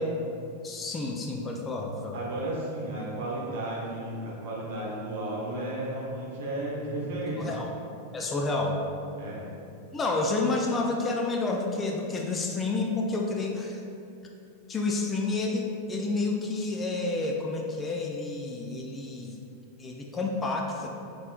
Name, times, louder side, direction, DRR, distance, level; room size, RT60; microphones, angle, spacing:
voice 1, 0.6-2.2 7.4-7.7 8.1-8.8 9.9-13.8 14.7-19.4 19.8-20.9, left 3 dB, 20° left, 0 dB, 0.4 m, -29 dB
voice 2, 2.1-7.6 9.2-9.5, right 1 dB, 55° right, -5 dB, 1.1 m, -33 dB
5.3 x 3.8 x 2.3 m, 2.6 s
figure-of-eight pair, 90°, 0 cm